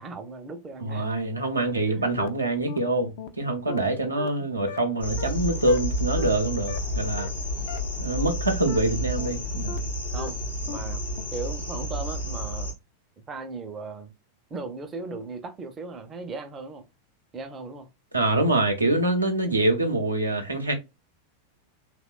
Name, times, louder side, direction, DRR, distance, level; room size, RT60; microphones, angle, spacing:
voice 1, 0.0-1.1 1.9-2.2 4.0-4.1 7.6-7.7 10.1-10.4 10.7-11.0 11.3-12.7 13.3-14.1 14.5-16.8 17.3-17.9, right 3 dB, 20° right, 0.5 m, -37 dB
voice 2, 0.8-7.3 8.0-9.8 18.1-20.7, right 2 dB, 80° right, 0.6 m, -25 dB
sound 1, 2.2-2.3 2.7-2.8 3.2-3.3 3.7-3.8 4.2-4.3 4.7-4.8 5.2-5.3 5.7-5.8 6.2-6.3 6.7-6.8 7.2-7.3 7.7-7.8 8.2-8.3 8.7-8.8 9.2-9.3 9.7-9.8 10.2-10.3 10.7-10.8 11.2-11.3, left 10 dB, 50° left, 0.3 m, -36 dB
sound 2, 5.0-12.7, equal, 80° left, 0.8 m, -30 dB
2.9 x 2.1 x 2.4 m
figure-of-eight pair, 90°, 0 cm